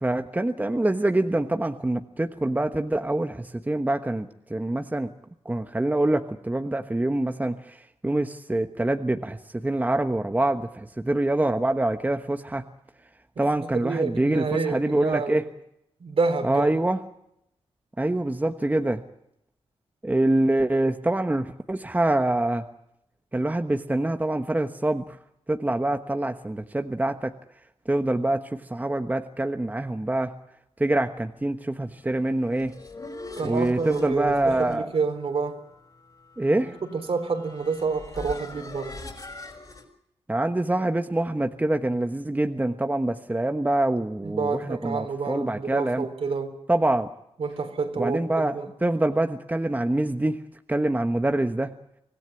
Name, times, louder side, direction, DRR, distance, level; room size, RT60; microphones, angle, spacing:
voice 1, 0.0-5.1 5.4-12.6 13.4-15.5 16.4-17.0 18.0-19.0 20.0-22.6 23.3-25.2 25.5-27.3 27.8-30.3 30.8-32.7 33.4-34.9 36.4-36.8 40.3-46.1 46.7-47.1 48.0-50.4 50.7-51.7, right 1 dB, 15° right, 1.2 m, -25 dB
voice 2, 13.4-15.4 16.0-16.8 33.4-35.6 36.9-39.0 44.2-46.5 47.4-48.7, right 4 dB, 65° right, 3.8 m, -28 dB
sound 1, 32.3-39.8, left 2 dB, 35° left, 5.7 m, -42 dB
25.0 x 16.5 x 9.6 m
cardioid pair, 80°, 11 cm